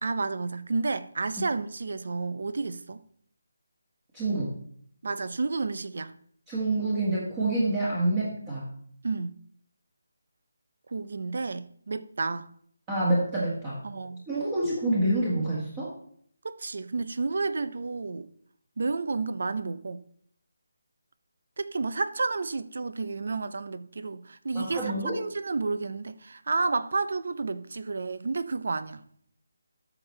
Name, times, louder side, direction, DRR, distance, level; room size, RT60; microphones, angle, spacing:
voice 1, 0.0-3.0 5.0-6.2 9.0-9.4 10.9-12.5 13.8-14.2 16.4-18.3 18.8-20.0 21.6-29.0, right 3 dB, 60° right, 0.6 m, -31 dB
voice 2, 4.1-4.5 6.5-8.7 12.9-13.8 14.3-15.9 24.5-25.2, right 2 dB, 15° right, 1.7 m, -27 dB
12.5 x 5.9 x 3.2 m
figure-of-eight pair, 170°, 0 cm